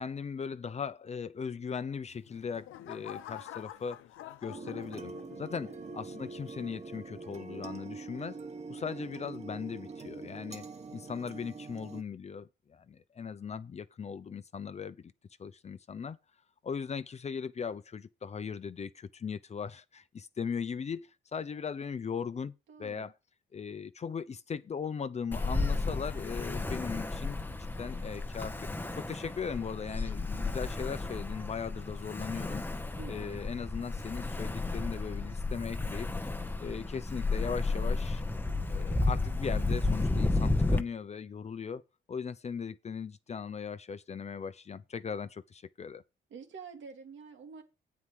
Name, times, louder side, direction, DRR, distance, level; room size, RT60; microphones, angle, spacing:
voice 1, 0.0-4.0 4.4-5.1 5.4-5.7 5.9-8.4 8.7-10.6 10.9-15.1 15.4-16.2 16.6-22.5 22.8-23.1 23.5-32.6 33.1-36.1 36.6-38.2 38.7-41.8 42.1-46.0, left 6 dB, 35° left, 0.6 m, -38 dB
sound 1, 2.0-5.6 6.1-6.5, left 12 dB, 85° left, 0.7 m, -47 dB
sound 2, 4.5-12.0, right 4 dB, 35° right, 1.3 m, -44 dB
voice 2, 5.6-6.0 8.7-9.0 22.7-23.1 33.0-33.4 46.3-47.6, right 5 dB, 70° right, 2.2 m, -48 dB
Ocean, 25.3-40.8, left 3 dB, 10° left, 0.9 m, -32 dB
8.2 x 4.7 x 7.4 m
cardioid pair, 90°, 20 cm